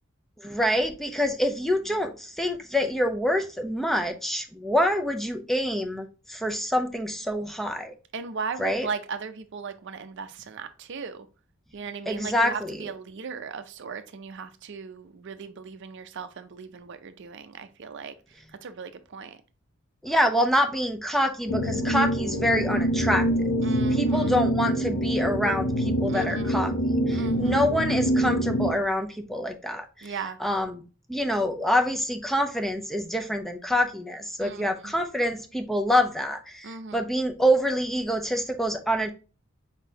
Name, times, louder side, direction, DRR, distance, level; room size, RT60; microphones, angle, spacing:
voice 1, 0.4-7.9 8.6-8.9 12.1-12.8 20.0-23.5 23.9-26.7 27.1-30.1 30.4-30.8 31.1-39.1, equal, ahead, 0.5 m, -26 dB
voice 2, 8.1-11.3 11.7-18.1 18.6-19.4 23.6-24.4 26.1-26.7 27.1-27.7 30.0-30.4 34.4-34.9 36.6-37.0, right 5 dB, 60° right, 0.5 m, -37 dB
sound 1, 21.5-28.7, equal, 65° left, 0.9 m, -25 dB
4.9 x 3.8 x 2.7 m
head